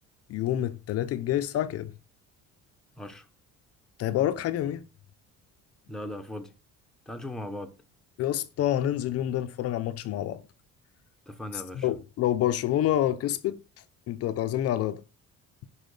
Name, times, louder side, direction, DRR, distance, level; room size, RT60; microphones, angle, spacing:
voice 1, 0.3-1.9 4.0-4.9 8.2-10.4 11.8-13.6 14.1-15.0, left 12 dB, 50° left, 0.7 m, -27 dB
voice 2, 5.9-6.5 7.1-7.8 11.3-11.9, left 1 dB, ahead, 1.0 m, -38 dB
10.5 x 4.8 x 6.4 m
cardioid pair, 180°, 31 cm